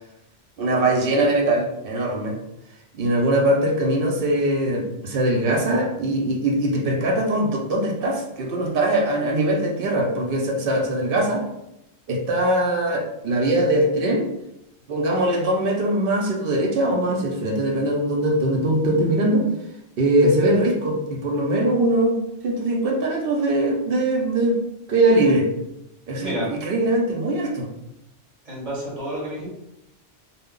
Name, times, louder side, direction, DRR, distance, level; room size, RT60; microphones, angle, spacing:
voice 1, 0.6-2.4 2.9-11.4 12.1-14.3 14.9-19.4 20.0-24.6 24.9-25.5 26.1-27.7, right 1 dB, 60° right, 0 dB, 0.7 m, -21 dB
voice 2, 26.2-26.5 28.4-29.5, right 1 dB, 35° right, -6 dB, 0.9 m, -29 dB
2.2 x 2.0 x 3.6 m, 0.84 s
omnidirectional pair, 1.2 m